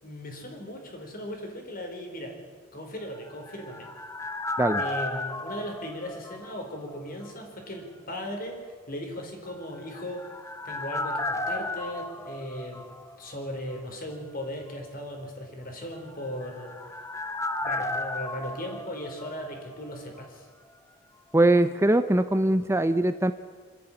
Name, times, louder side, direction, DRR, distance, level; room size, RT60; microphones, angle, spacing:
voice 1, 0.0-2.4 2.7-3.9 4.8-8.6 8.9-10.2 10.6-12.9 13.2-17.0 17.6-20.5, equal, 50° left, 2 dB, 4.5 m, -37 dB
sound 1, 3.1-7.0 7.2-7.3 9.7-13.5 13.7-13.8 16.1-19.9 20.2-20.3, left 2 dB, 15° left, 1.0 m, -34 dB
voice 2, 21.3-23.3, right 1 dB, 15° right, 11 dB, 0.6 m, -21 dB
27.5 x 10.5 x 10.0 m, 1.5 s
head